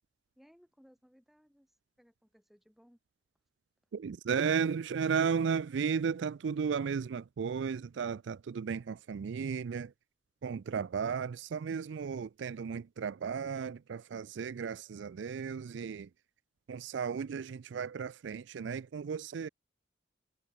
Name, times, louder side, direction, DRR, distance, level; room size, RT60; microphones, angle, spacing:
voice 1, 0.4-3.0, equal, ahead, 6.4 m, -63 dB
voice 2, 3.9-9.9 10.4-16.1 16.7-19.5, right 6 dB, 65° right, 0.4 m, -34 dB
head